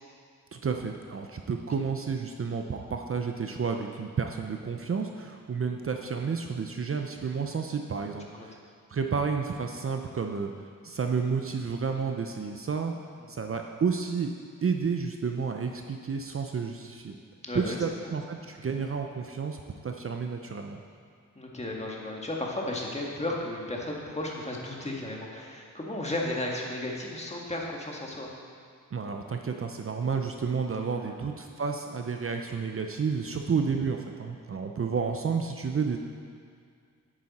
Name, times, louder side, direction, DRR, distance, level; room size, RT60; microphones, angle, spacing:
voice 1, 0.5-8.6 8.9-12.9 13.3-14.3 14.6-17.2 17.5-20.8 28.9-36.0, right 5 dB, 45° right, 4 dB, 0.7 m, -31 dB
voice 2, 17.4-17.8 21.4-28.3 31.0-31.1, left 1 dB, 20° left, -2 dB, 1.8 m, -34 dB
10.5 x 9.0 x 4.3 m, 2.2 s
wide cardioid pair, 90°, 32 cm